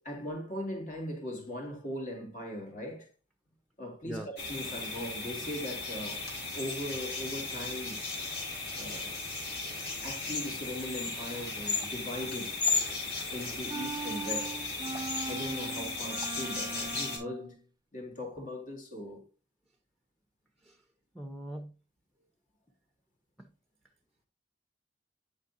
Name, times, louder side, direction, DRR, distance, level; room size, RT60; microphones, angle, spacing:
voice 1, 0.0-3.1 3.8-6.3 6.5-8.0 8.8-9.2 10.0-12.6 13.3-14.7 15.2-17.6 17.9-19.2, left 1 dB, 45° left, 2.2 m, -39 dB
sound 1, 4.4-17.2, left 3 dB, 60° left, 3.8 m, -35 dB
sound 2, 13.7-17.6, right 4 dB, 20° right, 0.4 m, -40 dB
voice 2, 21.1-21.7 23.4-23.5, right 1 dB, ahead, 0.9 m, -41 dB
9.3 x 6.3 x 2.7 m
head